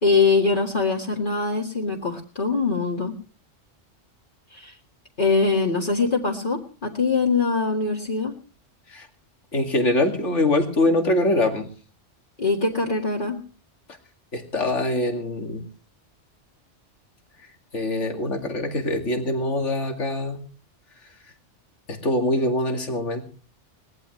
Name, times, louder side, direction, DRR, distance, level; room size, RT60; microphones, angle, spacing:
voice 1, 0.0-3.2 4.5-4.7 5.2-8.3 12.4-13.4, left 4 dB, 45° left, -2 dB, 2.1 m, -23 dB
voice 2, 9.5-11.7 14.3-15.6 17.7-20.4 21.9-23.3, left 1 dB, 80° left, 4 dB, 2.7 m, -23 dB
21.5 x 18.0 x 3.2 m, 0.38 s
omnidirectional pair, 1.2 m